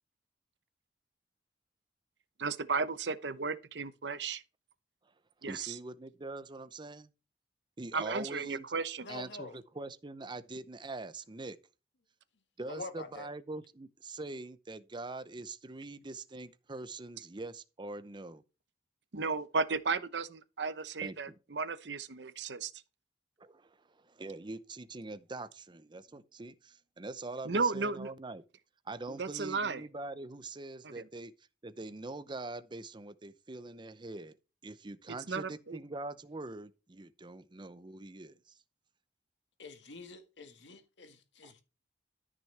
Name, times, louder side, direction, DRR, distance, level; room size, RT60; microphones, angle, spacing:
voice 1, 2.4-4.4 5.4-5.8 7.9-9.1 19.1-22.7 27.4-28.1 29.2-29.8 31.0-31.1 35.3-35.8, right 4 dB, 75° right, 0.9 m, -34 dB
voice 2, 5.4-7.1 7.8-8.7 9.1-11.6 12.6-18.4 21.0-21.3 23.4-28.4 28.9-31.3 31.6-34.4 34.6-38.5 41.4-41.5, right 2 dB, 25° right, 0.7 m, -43 dB
voice 3, 9.0-9.6 12.7-13.3 39.6-41.6, left 3 dB, 85° left, 1.9 m, -46 dB
13.5 x 6.4 x 3.4 m
head